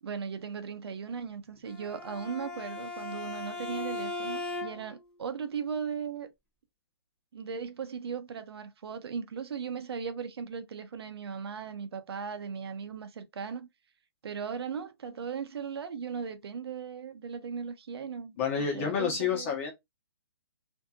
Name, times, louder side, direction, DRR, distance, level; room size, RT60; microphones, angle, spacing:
voice 1, 0.0-6.3 7.3-13.7 14.2-19.6, right 6 dB, 70° right, 0.6 m, -37 dB
Bowed string instrument, 1.6-5.0, left 2 dB, 5° left, 0.5 m, -38 dB
voice 2, 18.4-19.7, left 6 dB, 30° left, 1.0 m, -29 dB
2.6 x 2.6 x 2.2 m
hypercardioid pair, 170°, 14 cm